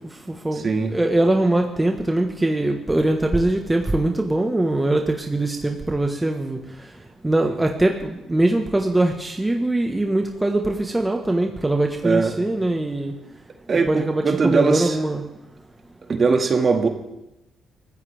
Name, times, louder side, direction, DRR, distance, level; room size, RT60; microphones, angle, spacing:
voice 1, 0.3-6.6 7.2-13.1 13.9-15.2, right 1 dB, 15° right, 3 dB, 1.5 m, -22 dB
voice 2, 13.7-14.9 16.1-16.9, right 4 dB, 40° right, 4 dB, 2.2 m, -20 dB
23.5 x 14.5 x 3.6 m, 0.93 s
cardioid pair, 90°, 0 cm